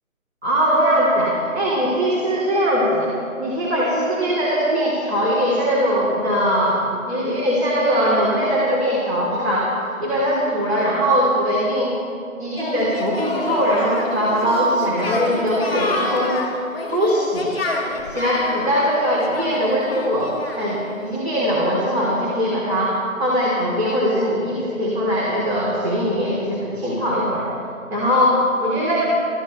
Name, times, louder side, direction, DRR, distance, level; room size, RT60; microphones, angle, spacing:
voice 1, 0.4-3.1 3.4-9.7 10.0-12.0 12.4-16.4 16.8-17.5 18.1-20.3 20.6-27.5 27.9-29.0, equal, 50° right, -5 dB, 3.6 m, -21 dB
Singing, 12.6-20.9, left 2 dB, ahead, 0.9 m, -28 dB
24.5 x 14.5 x 3.3 m, 2.5 s
figure-of-eight pair, 165°, 41 cm